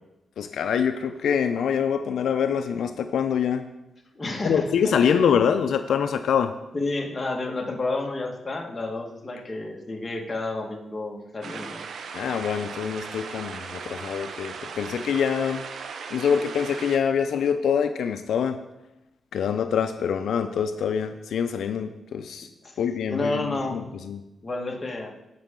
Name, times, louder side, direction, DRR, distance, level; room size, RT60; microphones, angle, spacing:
voice 1, 0.4-3.6 4.4-6.5 12.1-15.7 16.1-18.6 19.3-22.5 22.8-24.2, left 7 dB, 85° left, 8 dB, 0.5 m, -25 dB
voice 2, 4.1-5.3 6.7-11.8 22.6-22.8 23.1-23.8 24.4-25.1, left 2 dB, 25° left, 0 dB, 1.7 m, -30 dB
sound 1, 11.4-17.0, right 5 dB, 70° right, 0.7 m, -38 dB
16.5 x 5.6 x 3.8 m, 0.95 s
cardioid pair, 105°, 0 cm